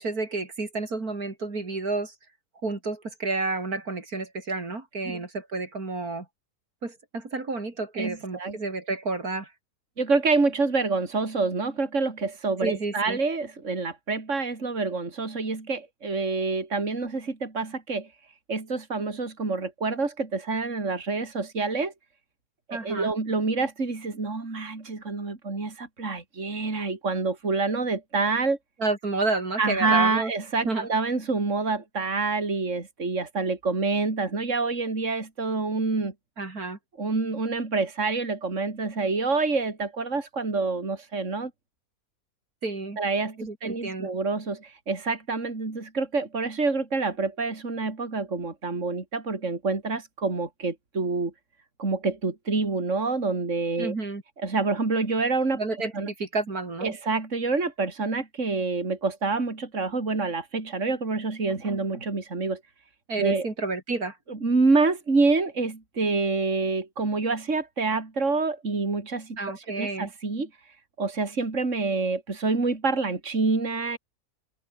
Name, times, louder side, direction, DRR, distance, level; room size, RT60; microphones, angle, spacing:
voice 1, 0.0-2.1 2.6-6.3 6.8-9.5 12.6-13.2 22.7-23.1 28.8-30.3 30.6-30.9 36.4-36.8 42.6-43.0 43.4-44.1 53.8-54.2 55.6-56.9 63.1-64.2 69.4-70.1, right 3 dB, 70° right, 4.3 m, -30 dB
voice 2, 8.0-8.6 10.0-18.1 18.5-21.9 22.7-28.6 29.6-36.1 37.0-41.5 43.0-51.3 51.8-53.9 54.4-55.6 55.9-56.1 56.8-62.6 63.2-63.5 64.3-70.5 71.0-74.0, right 3 dB, 50° right, 3.7 m, -27 dB
omnidirectional pair, 1.6 m